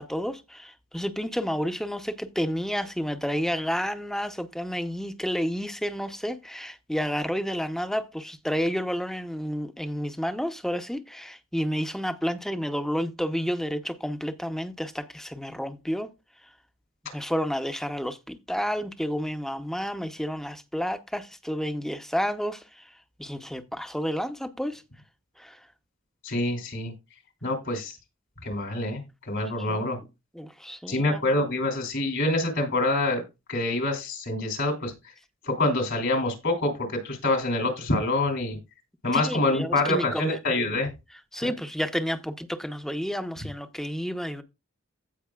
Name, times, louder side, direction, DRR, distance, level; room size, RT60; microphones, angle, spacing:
voice 1, 0.0-16.1 17.1-22.9 23.2-24.8 25.4-25.6 29.7-30.0 30.3-31.3 39.1-40.4 41.3-44.4, equal, ahead, 0.7 m, -30 dB
voice 2, 26.2-26.9 27.4-28.0 28.4-30.0 30.9-33.2 33.5-35.1 35.4-38.6 39.0-40.9 41.4-41.5, left 2 dB, 65° left, 3.1 m, -26 dB
16.0 x 5.3 x 2.4 m
head